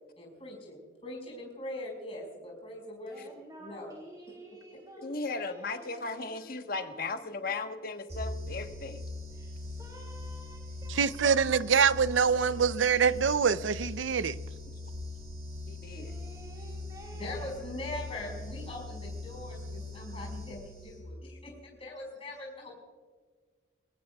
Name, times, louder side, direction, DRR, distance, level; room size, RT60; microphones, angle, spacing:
voice 1, 0.2-3.3 3.6-3.9 4.9-5.0 17.1-22.7, left 1 dB, 30° left, 5.3 m, -42 dB
voice 2, 3.0-7.8 9.3-11.4 11.7-12.8 15.8-18.5, right 1 dB, 20° right, 2.8 m, -53 dB
voice 3, 5.0-9.0 15.7-16.1, left 3 dB, 50° left, 1.2 m, -36 dB
sound 1, 8.1-21.2, left 2 dB, 35° right, 4.8 m, -41 dB
voice 4, 10.9-14.4, right 6 dB, 85° right, 0.6 m, -25 dB
22.5 x 18.5 x 2.3 m
head